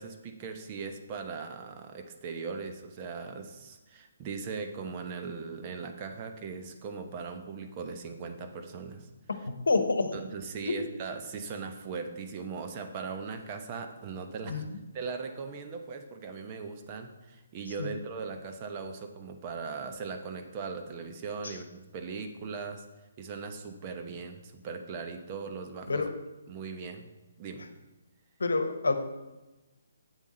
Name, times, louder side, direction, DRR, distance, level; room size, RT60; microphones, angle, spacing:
voice 1, 0.0-9.1 10.1-14.7 14.9-22.8 23.2-26.1 26.5-27.1 27.4-27.7, right 5 dB, 30° right, 5 dB, 1.0 m, -39 dB
voice 2, 9.7-10.1 10.6-10.8 14.4-14.8 17.8-17.9 21.4-21.6 25.9-26.1 28.4-29.0, left 3 dB, 70° left, 8 dB, 1.1 m, -28 dB
8.3 x 7.2 x 4.3 m, 1.1 s
figure-of-eight pair, 140°, 0 cm